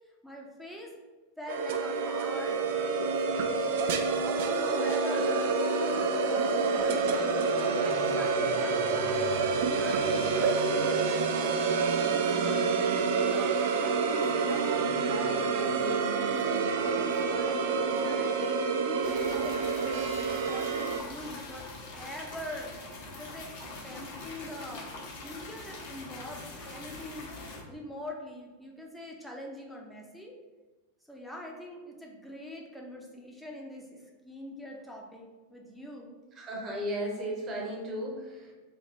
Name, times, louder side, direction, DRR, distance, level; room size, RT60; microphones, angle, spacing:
voice 1, 0.2-0.9 1.4-2.7 2.9-3.7 4.4-5.5 6.0-7.3 7.6-9.2 9.6-12.8 13.2-13.5 13.8-15.9 16.2-17.7 18.0-21.7 21.9-22.7 23.2-24.9 25.2-27.3 27.7-30.3 31.1-36.2, left 1 dB, ahead, -2 dB, 0.7 m, -43 dB
sound 1, 1.5-21.0, right 4 dB, 55° right, 0.4 m, -28 dB
sound 2, 19.0-27.6, left 3 dB, 50° left, 0.9 m, -43 dB
voice 2, 36.4-38.5, equal, 30° right, -1 dB, 1.1 m, -35 dB
3.3 x 2.9 x 3.7 m, 1.2 s
figure-of-eight pair, 90°, 0 cm